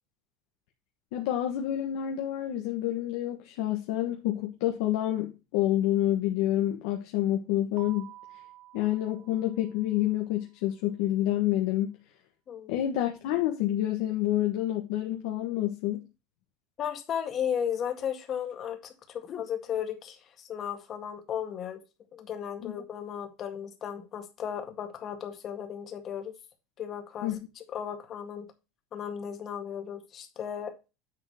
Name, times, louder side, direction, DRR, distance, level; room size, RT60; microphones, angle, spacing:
voice 1, 1.1-8.1 8.7-12.0 12.7-16.0 22.6-22.7 27.2-27.4, left 13 dB, 70° left, 1.4 m, -28 dB
Keyboard (musical), 7.8-10.3, right 13 dB, 50° right, 1.5 m, -51 dB
voice 2, 12.5-12.8 16.8-21.8 22.1-26.3 26.8-27.3 27.7-28.5 28.9-30.7, left 8 dB, 35° left, 1.9 m, -35 dB
9.8 x 3.9 x 6.5 m
supercardioid pair, 145°, 0 cm